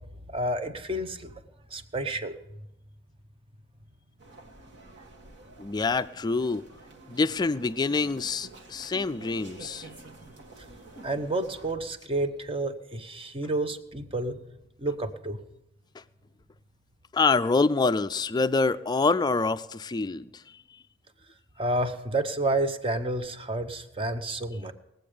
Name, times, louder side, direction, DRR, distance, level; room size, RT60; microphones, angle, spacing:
voice 1, 0.3-1.3 1.7-2.4 11.0-14.4 14.8-15.4 21.6-24.7, right 2 dB, 25° right, 9 dB, 0.8 m, -30 dB
sound 1, 4.2-11.7, right 2 dB, 60° right, 1.6 m, -49 dB
voice 2, 5.6-6.6 7.1-9.9 17.1-20.4, left 3 dB, 20° left, 12 dB, 0.3 m, -26 dB
20.0 x 7.7 x 5.0 m, 0.87 s
head